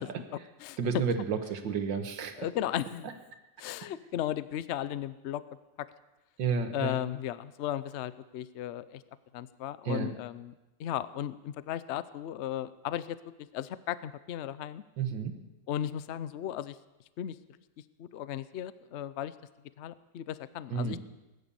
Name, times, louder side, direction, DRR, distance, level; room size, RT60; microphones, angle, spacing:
voice 1, 0.0-0.8 2.4-3.1 3.6-5.4 5.8-5.9 6.7-9.0 9.3-10.5 10.8-13.2 13.5-14.8 15.7-16.8 17.2-17.4 18.0-19.3 19.8-21.0, left 11 dB, 75° left, 16 dB, 0.6 m, -35 dB
voice 2, 0.8-2.5 6.4-7.0 9.9-10.1 15.0-15.3 20.7-21.0, right 5 dB, 85° right, 7 dB, 2.0 m, -31 dB
19.5 x 10.0 x 7.0 m, 1.0 s
omnidirectional pair, 2.0 m